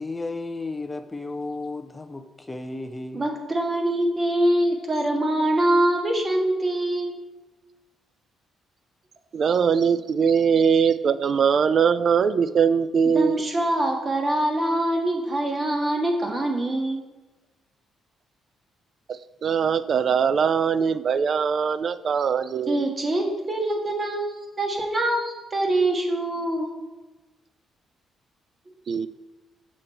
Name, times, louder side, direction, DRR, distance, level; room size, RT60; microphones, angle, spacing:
voice 1, 0.0-3.3, left 2 dB, 15° left, 8 dB, 0.6 m, -33 dB
voice 2, 3.1-7.1 13.1-17.0 22.7-26.7, right 1 dB, 30° right, 2 dB, 1.6 m, -24 dB
voice 3, 9.3-13.4 19.1-22.9 28.9-29.1, right 6 dB, 55° right, 15 dB, 0.4 m, -21 dB
6.6 x 6.3 x 4.3 m, 1.2 s
cardioid pair, 90°, 0 cm